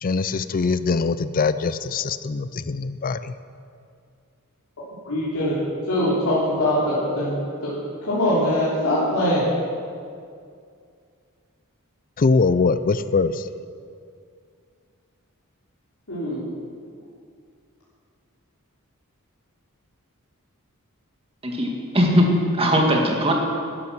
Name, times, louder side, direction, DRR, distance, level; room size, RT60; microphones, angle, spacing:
voice 1, 0.0-3.3 12.2-13.4, left 4 dB, 40° left, 13 dB, 0.4 m, -22 dB
voice 2, 5.0-5.6 5.9-7.3 7.6-7.7 8.0-9.6 16.1-16.4, left 1 dB, 75° left, -10 dB, 3.3 m, -22 dB
voice 3, 21.4-22.3 22.6-23.3, equal, 25° right, 0 dB, 2.0 m, -19 dB
12.0 x 11.0 x 6.0 m, 2.3 s
head